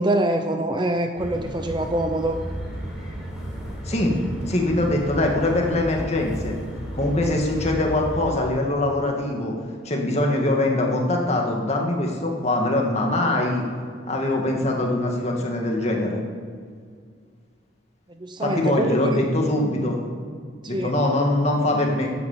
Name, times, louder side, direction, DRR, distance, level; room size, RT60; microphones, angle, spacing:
voice 1, 0.0-2.4 18.1-19.0 20.6-20.9, right 1 dB, 25° right, 6 dB, 0.7 m, -24 dB
sound 1, 1.2-8.3, equal, 5° right, 4.5 m, -33 dB
voice 2, 4.5-6.6 6.9-9.5 9.8-13.7 14.1-16.2 18.4-20.0 20.7-22.1, left 1 dB, 35° left, 0 dB, 2.2 m, -23 dB
15.5 x 9.5 x 7.5 m, 2.1 s
head